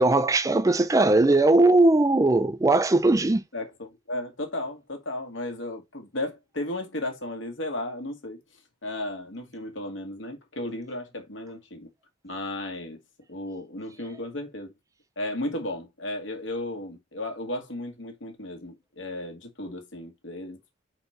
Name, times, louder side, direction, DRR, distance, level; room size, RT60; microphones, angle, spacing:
voice 1, 0.0-3.4, right 2 dB, 15° right, 0.4 m, -19 dB
voice 2, 3.5-8.4 8.8-11.9 12.2-13.0 13.3-14.7 15.2-20.6, left 1 dB, 75° left, 2.0 m, -34 dB
5.1 x 4.4 x 4.3 m
head